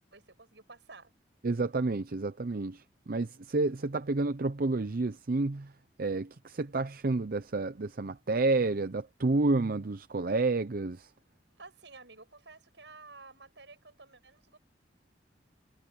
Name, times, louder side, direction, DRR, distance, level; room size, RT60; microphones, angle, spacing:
voice 1, 0.1-1.1 11.6-14.6, right 3 dB, 75° right, 7.8 m, -52 dB
voice 2, 1.4-5.7 6.0-11.1, right 3 dB, 55° right, 0.6 m, -30 dB
head